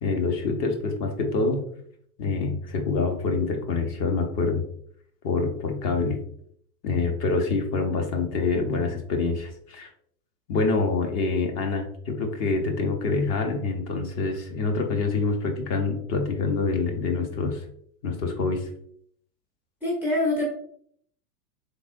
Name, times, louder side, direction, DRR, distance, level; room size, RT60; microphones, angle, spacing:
voice 1, 0.0-1.6 2.2-4.6 5.2-6.2 6.8-9.9 10.5-17.6 18.0-18.7, left 4 dB, 30° left, 4 dB, 0.7 m, -26 dB
voice 2, 19.8-20.5, left 1 dB, 5° right, -3 dB, 0.4 m, -24 dB
3.6 x 3.4 x 2.5 m, 0.64 s
hypercardioid pair, 110°, 49 cm